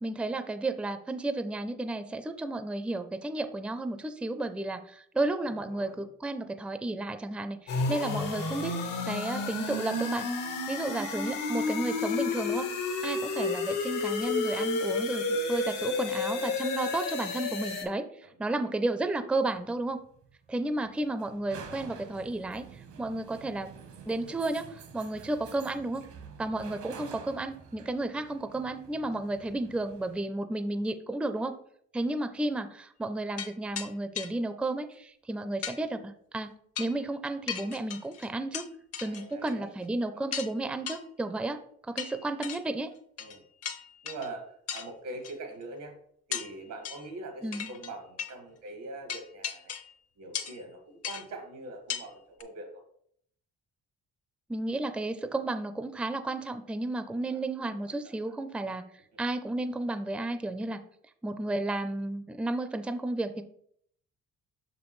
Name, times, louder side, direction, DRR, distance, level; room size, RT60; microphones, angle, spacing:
voice 1, 0.0-8.7 9.1-10.3 10.7-12.7 13.0-18.1 18.4-20.0 20.5-23.7 24.1-26.0 26.4-31.6 31.9-36.5 36.8-38.6 39.0-41.6 41.9-42.9 47.4-47.7 54.5-58.8 59.2-60.8 61.2-63.4, right 2 dB, 5° right, 9 dB, 0.4 m, -32 dB
voice 2, 5.5-6.1 18.2-18.7 39.0-39.7 40.0-40.3 41.9-42.3 43.2-43.4 44.0-46.0 46.3-49.7 50.2-52.8 57.1-58.3, right 2 dB, 90° right, 3 dB, 1.8 m, -44 dB
sound 1, 7.7-17.8, left 3 dB, 85° left, 1.3 m, -31 dB
sound 2, 19.6-30.2, right 5 dB, 75° right, 1.1 m, -49 dB
sound 3, 33.4-33.5 33.8-33.9 34.2-34.3 35.6-35.8 36.8-37.0 37.5-38.7 38.9-39.5 39.8-39.9 40.3-40.5 40.9-41.0 42.0-42.6 43.2-43.4 43.6-44.3 44.7-44.9 45.2-45.3 46.3-46.5 46.9-47.1 47.5-47.9 48.2-48.3 49.1-49.9 50.3-50.6 51.0-51.2 51.9-52.1 52.4-52.5, left 8 dB, 55° left, 0.7 m, -36 dB
6.0 x 5.2 x 3.1 m, 0.67 s
cardioid pair, 90°, 30 cm